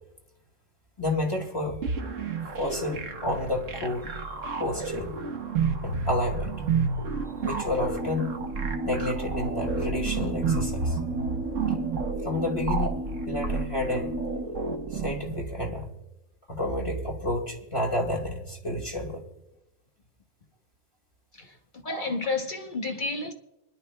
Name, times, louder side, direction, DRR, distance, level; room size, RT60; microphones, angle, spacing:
voice 1, 1.0-1.8 2.6-4.2 4.6-5.2 5.8-6.5 7.4-8.4 8.8-11.0 12.2-13.0 13.3-14.2 14.9-15.9 16.5-19.2 21.8-22.1, left 2 dB, 25° left, 2.0 m, -30 dB
sound 1, 1.8-15.4, right 5 dB, 80° right, 1.6 m, -31 dB
sound 2, 7.7-14.4, right 1 dB, 10° right, 1.3 m, -34 dB
voice 2, 21.8-23.3, left 3 dB, 40° left, 1.1 m, -30 dB
26.0 x 11.0 x 2.3 m
omnidirectional pair, 1.3 m